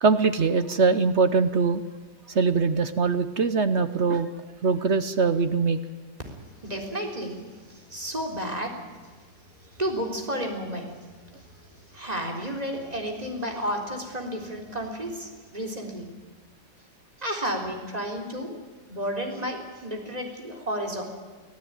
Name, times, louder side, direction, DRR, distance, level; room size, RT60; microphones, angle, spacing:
voice 1, 0.0-1.8 2.3-4.3 4.6-5.8, right 4 dB, 50° right, 11 dB, 0.9 m, -22 dB
voice 2, 6.6-8.7 9.8-10.9 11.9-16.1 17.2-18.6 18.9-21.0, equal, 20° right, 1 dB, 3.8 m, -32 dB
25.0 x 15.5 x 9.2 m, 1.4 s
omnidirectional pair, 2.0 m